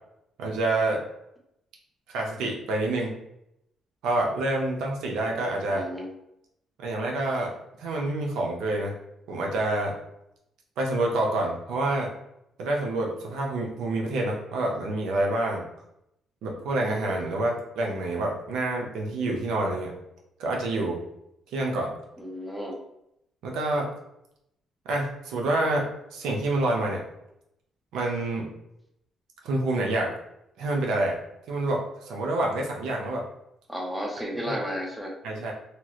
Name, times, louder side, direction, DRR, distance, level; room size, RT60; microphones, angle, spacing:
voice 1, 0.4-1.0 2.1-3.2 4.0-5.9 6.8-7.5 7.8-9.0 9.3-10.0 10.8-12.1 12.6-15.6 16.4-19.9 20.4-21.0 21.5-21.9 23.4-23.9 24.9-27.0 27.9-28.5 29.4-30.2 30.6-31.2 31.5-33.2 34.5-34.6 35.2-35.5, right 2 dB, 85° right, 0 dB, 0.6 m, -27 dB
voice 2, 5.7-6.1 22.2-22.7 33.7-35.1, equal, 5° right, -1 dB, 0.7 m, -33 dB
2.9 x 2.3 x 2.9 m, 0.81 s
cardioid pair, 90°, 0 cm